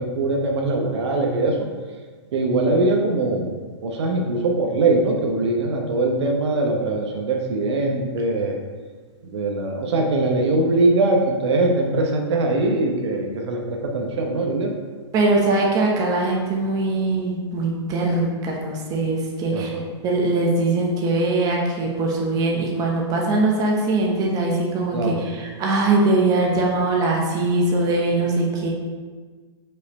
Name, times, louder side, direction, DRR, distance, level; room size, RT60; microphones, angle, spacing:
voice 1, 0.0-1.6 2.3-3.5 3.8-8.5 9.2-14.7 19.5-19.8 24.9-25.2, right 2 dB, 65° right, 1 dB, 0.9 m, -22 dB
voice 2, 15.1-19.7 20.0-28.7, right 2 dB, 25° right, -1 dB, 1.0 m, -21 dB
5.5 x 3.2 x 5.3 m, 1.5 s
hypercardioid pair, 140°, 15 cm